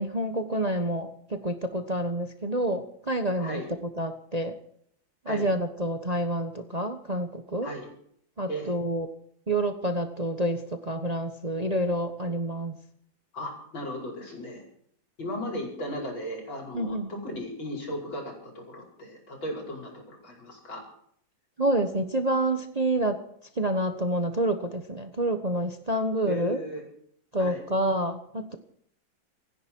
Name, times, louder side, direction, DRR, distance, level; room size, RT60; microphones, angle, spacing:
voice 1, 0.0-3.6 4.0-4.5 5.2-7.7 8.4-9.1 9.5-12.8 16.7-17.1 21.6-23.2 23.6-26.6 27.3-28.6, right 1 dB, 25° right, 7 dB, 1.1 m, -28 dB
voice 2, 13.3-14.6 15.2-20.8 26.2-26.8 27.4-27.6, equal, 80° left, 1 dB, 6.1 m, -36 dB
26.5 x 10.5 x 4.6 m, 0.67 s
omnidirectional pair, 2.1 m